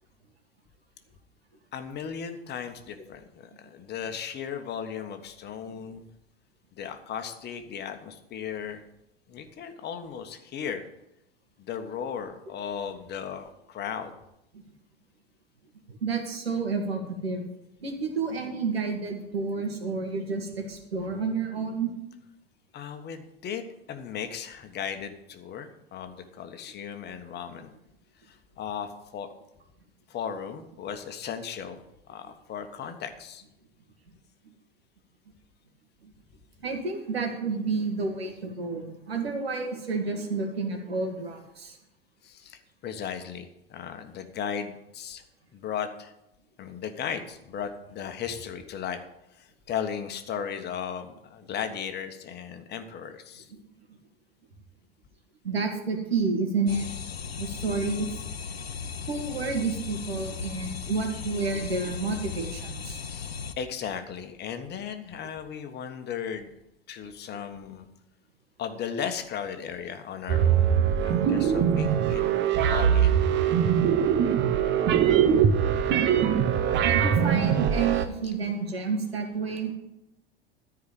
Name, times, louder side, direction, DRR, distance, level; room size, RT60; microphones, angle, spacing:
voice 1, 1.7-6.0 6.7-8.8 9.3-10.9 11.6-14.1 22.7-27.7 28.2-29.3 30.1-31.8 32.1-33.4 42.2-45.2 45.5-46.1 46.6-49.0 49.3-53.5 63.0-63.3 63.6-66.5 66.9-67.9 68.6-72.2 72.7-73.2, left 7 dB, 35° left, 7 dB, 1.4 m, -36 dB
voice 2, 15.9-17.4 17.8-21.9 36.0-36.1 36.6-41.8 55.4-56.9 57.4-58.2 59.1-63.0 76.8-79.7, right 4 dB, 80° right, 3 dB, 2.2 m, -30 dB
sound 1, 56.7-63.5, left 6 dB, 85° left, 0.8 m, -37 dB
sound 2, 70.3-78.1, right 8 dB, 40° right, 1.1 m, -22 dB
13.5 x 5.0 x 8.9 m, 0.86 s
figure-of-eight pair, 85°, 30 cm